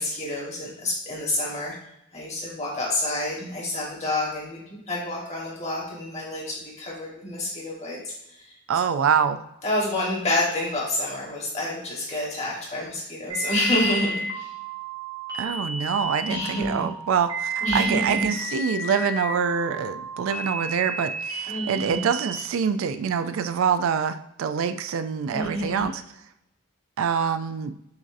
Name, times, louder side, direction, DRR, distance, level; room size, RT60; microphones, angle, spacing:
voice 1, 0.0-1.7 2.1-8.1 8.4-8.5 8.9-9.0 9.6-14.5 16.3-16.8 17.6-18.3 21.5-22.0 25.3-25.8, left 1 dB, 30° left, -4 dB, 1.3 m, -28 dB
voice 2, 8.7-9.4 15.3-26.0 27.0-27.7, right 7 dB, 70° right, 11 dB, 0.3 m, -25 dB
sound 1, 13.3-22.3, right 3 dB, 20° right, 0.9 m, -32 dB
7.0 x 2.6 x 2.5 m, 0.83 s
head